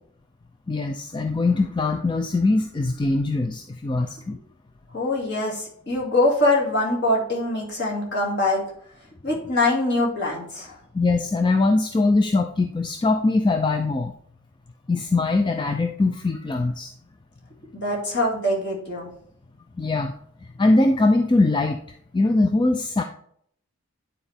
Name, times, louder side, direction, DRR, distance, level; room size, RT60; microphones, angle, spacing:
voice 1, 0.7-4.4 10.9-14.1 14.9-16.9 19.8-20.1 20.6-21.8 22.1-23.0, left 2 dB, 20° left, 6 dB, 0.3 m, -21 dB
voice 2, 4.9-8.6 9.2-10.8 17.7-19.1, left 2 dB, 50° left, -2 dB, 2.3 m, -23 dB
9.3 x 4.3 x 3.4 m, 0.65 s
head